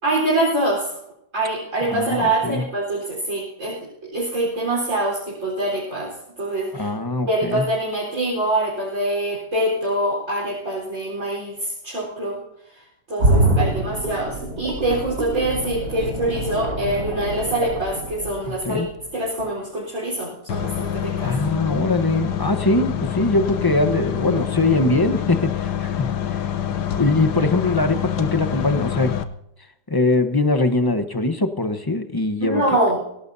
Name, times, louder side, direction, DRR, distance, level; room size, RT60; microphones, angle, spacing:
voice 1, 0.0-1.0 1.3-6.9 7.3-12.4 12.7-18.8 19.1-21.4 32.4-33.2, right 1 dB, 50° right, -5 dB, 4.7 m, -24 dB
voice 2, 1.9-2.6 6.7-7.6 18.6-18.9 21.2-26.4 26.9-29.2 29.9-32.6, left 2 dB, 15° left, 8 dB, 0.9 m, -22 dB
sound 1, 13.2-19.0 19.4-19.5, right 1 dB, 70° right, 4.7 m, -24 dB
sound 2, 20.5-29.2, left 10 dB, 85° left, 1.5 m, -26 dB
24.5 x 17.5 x 2.8 m, 0.82 s
omnidirectional pair, 1.7 m